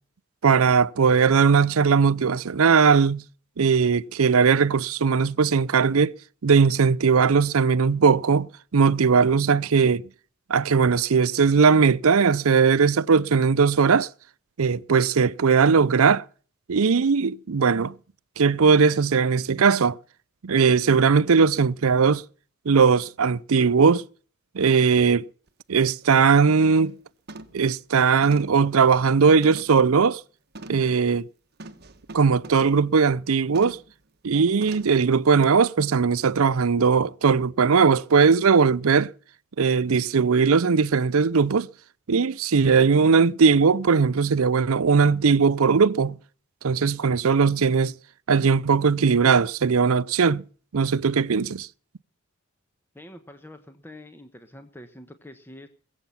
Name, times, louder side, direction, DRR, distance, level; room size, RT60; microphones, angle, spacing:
voice 1, 0.4-3.2 3.6-6.1 6.4-10.1 10.5-14.1 14.6-16.2 16.7-17.9 18.4-20.0 20.4-22.2 22.7-24.0 24.5-25.3 25.7-26.9 27.5-30.2 30.7-31.3 32.1-33.8 34.2-39.1 39.6-41.7 42.1-46.2 46.6-47.9 48.3-50.4 50.7-51.7, right 5 dB, 75° right, 0.6 m, -19 dB
sound 1, 25.5-25.6 26.0-26.3 26.6-27.0 27.3-27.7 28.2-29.9 30.5-30.9 31.6-32.9 33.5-33.9 34.6-35.0 35.4-35.5, right 2 dB, 50° right, 1.3 m, -43 dB
voice 2, 52.9-55.7, left 1 dB, 10° left, 1.2 m, -45 dB
21.5 x 8.1 x 5.8 m
head